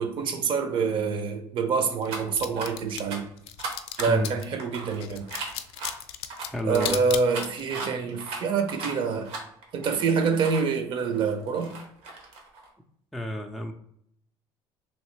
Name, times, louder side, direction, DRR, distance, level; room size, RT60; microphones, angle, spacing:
voice 1, 0.0-3.3 4.0-5.3 6.6-9.3 9.7-11.8, right 5 dB, 55° right, 6 dB, 0.6 m, -26 dB
sound 1, 2.0-2.2 2.5-2.7 3.1-3.2 3.6-5.9 6.3-10.6 11.1-12.7, right 3 dB, 75° right, 0.9 m, -37 dB
sound 2, 2.1-4.5 5.0-7.7, left 11 dB, 75° left, 0.4 m, -35 dB
voice 2, 6.4-7.0 13.1-13.7, equal, ahead, 3 dB, 0.3 m, -30 dB
3.1 x 2.8 x 3.2 m, 0.71 s
cardioid pair, 110°, 10 cm